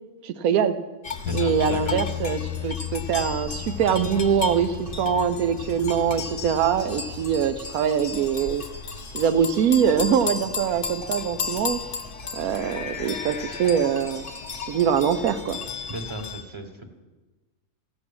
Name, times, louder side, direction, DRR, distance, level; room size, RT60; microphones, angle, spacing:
voice 1, 0.2-0.8 1.3-8.6 9.1-11.8 12.3-14.3 14.7-15.6, right 8 dB, 85° right, 10 dB, 1.1 m, -23 dB
sound 1, 1.0-16.4, left 4 dB, 45° left, 1.0 m, -34 dB
Bass guitar, 1.3-7.5, left 16 dB, 80° left, 1.0 m, -35 dB
voice 2, 1.3-2.2 15.9-17.0, right 1 dB, 20° right, 3 dB, 1.1 m, -36 dB
14.5 x 6.0 x 8.6 m, 1.2 s
omnidirectional pair, 1.5 m